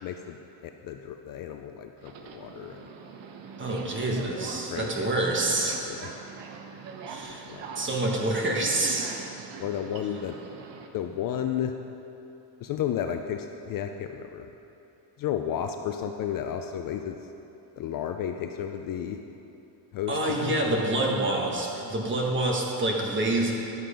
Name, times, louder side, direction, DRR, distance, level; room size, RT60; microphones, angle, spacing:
voice 1, 0.0-2.8 4.7-5.2 5.7-6.1 7.4-7.7 9.6-10.4 10.9-11.7 12.6-14.5 15.2-17.2 17.8-19.2 19.9-20.8, left 9 dB, 45° left, 6 dB, 0.5 m, -33 dB
Subway metro underground, 2.0-10.9, right 5 dB, 65° right, 1.0 m, -42 dB
voice 2, 3.6-5.8 7.1-7.5 7.7-9.2 20.1-23.5, right 2 dB, 25° right, -1 dB, 1.4 m, -27 dB
11.0 x 7.6 x 5.1 m, 2.9 s
cardioid pair, 140°, 47 cm